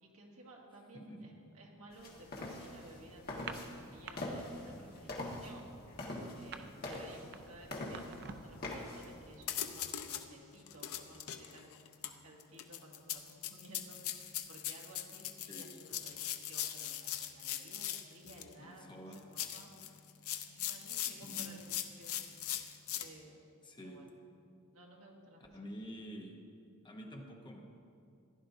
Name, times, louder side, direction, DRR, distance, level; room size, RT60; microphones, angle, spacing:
voice 1, 0.0-5.7 6.4-19.0 19.3-20.0 20.5-21.7 22.0-22.6 23.0-23.5 23.8-24.1 24.7-25.5, right 1 dB, 70° right, -1 dB, 1.8 m, -56 dB
voice 2, 0.9-1.4 15.5-15.7 18.6-19.3 21.2-21.6 23.6-24.1 25.5-26.4 26.8-27.6, equal, 20° left, 1 dB, 1.0 m, -48 dB
sound 1, 1.9-9.4, left 1 dB, 45° left, 1.7 m, -44 dB
sound 2, 3.3-4.2 4.5-4.8 5.1-8.6, right 6 dB, 50° right, 0.5 m, -48 dB
sound 3, 9.0-9.1 9.4-10.3 10.7-18.5 19.1-23.1, left 11 dB, 70° left, 0.6 m, -40 dB
15.5 x 11.0 x 2.7 m, 2.4 s
head